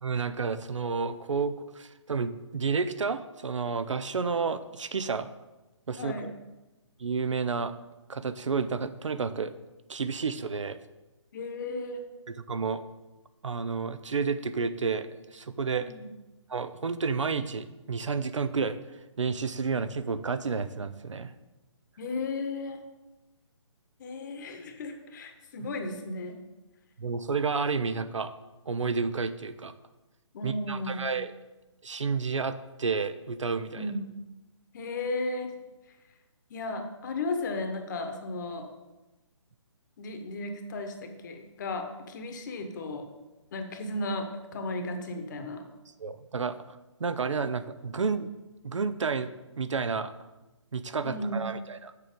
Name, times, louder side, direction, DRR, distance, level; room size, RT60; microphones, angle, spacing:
voice 1, 0.0-5.3 5.9-6.3 7.0-7.7 8.1-9.5 9.9-10.8 12.3-12.8 13.4-15.9 16.5-18.8 19.2-21.3 27.0-28.3 28.7-29.7 30.4-31.3 31.8-33.9 46.0-48.3 48.6-50.1 50.7-51.9, right 5 dB, 70° right, 12 dB, 0.6 m, -31 dB
voice 2, 6.0-6.3 11.3-12.0 15.8-16.1 22.0-22.8 24.0-26.4 30.3-31.1 33.8-34.0 34.7-35.5 36.5-38.7 40.0-43.1 43.5-45.6 51.0-51.4, left 2 dB, 35° left, 6 dB, 1.1 m, -34 dB
6.7 x 6.2 x 5.2 m, 1.1 s
figure-of-eight pair, 140°, 16 cm